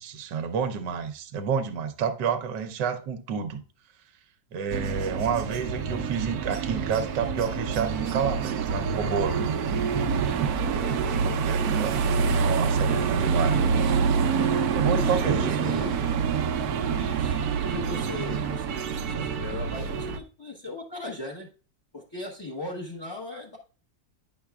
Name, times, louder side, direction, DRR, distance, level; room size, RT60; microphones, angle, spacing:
voice 1, 0.0-3.6 4.5-9.5 11.2-12.0 12.3-13.6 14.5-15.8, right 7 dB, 85° right, 1.4 m, -29 dB
sound 1, 4.7-20.2, right 6 dB, 70° right, 1.1 m, -26 dB
voice 2, 4.8-5.2 10.7-11.6 12.0-12.5 14.7-16.3 16.9-21.5 21.9-23.6, left 2 dB, 20° left, 0.8 m, -38 dB
9.6 x 6.4 x 2.3 m
omnidirectional pair, 1.8 m